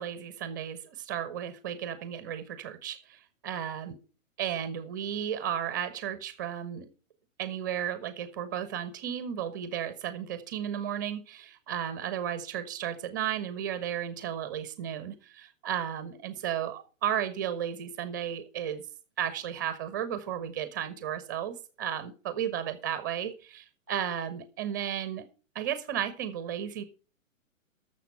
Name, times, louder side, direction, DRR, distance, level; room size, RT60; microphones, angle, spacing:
voice 1, 0.0-3.9 4.4-6.9 7.4-18.8 19.2-25.3 25.5-26.8, right 9 dB, 15° right, 13 dB, 0.5 m, -34 dB
12.5 x 6.8 x 5.5 m, 0.37 s
figure-of-eight pair, 120°, 41 cm